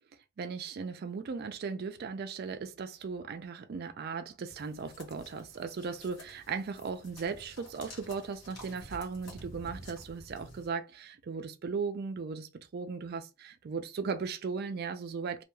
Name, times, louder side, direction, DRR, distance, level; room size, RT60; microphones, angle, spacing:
voice 1, 0.4-15.4, right 5 dB, 45° right, 0.3 m, -37 dB
sound 1, 4.5-10.7, equal, 55° left, 1.0 m, -50 dB
2.3 x 2.2 x 3.0 m
head